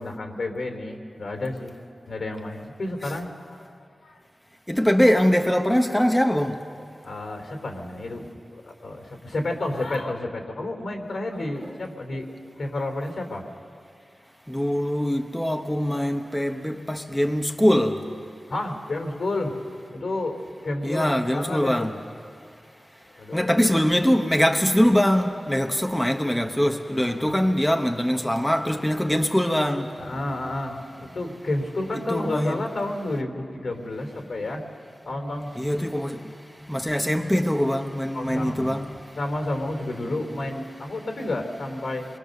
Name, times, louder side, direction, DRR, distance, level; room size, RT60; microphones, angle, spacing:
voice 1, 0.0-1.7 2.1-3.3 3.6-3.7 4.0-4.2 7.0-8.3 8.5-13.4 18.5-19.5 19.9-21.9 23.2-23.7 27.0-27.3 30.0-34.6 35.1-36.1 36.6-36.8 38.1-42.1, left 2 dB, 75° left, 3.5 m, -31 dB
voice 2, 4.7-6.5 14.5-18.0 20.8-21.9 23.3-29.9 31.9-32.6 35.5-36.2 36.7-38.9, equal, 5° left, 1.0 m, -22 dB
26.5 x 23.0 x 6.7 m
wide cardioid pair, 100°, 0 cm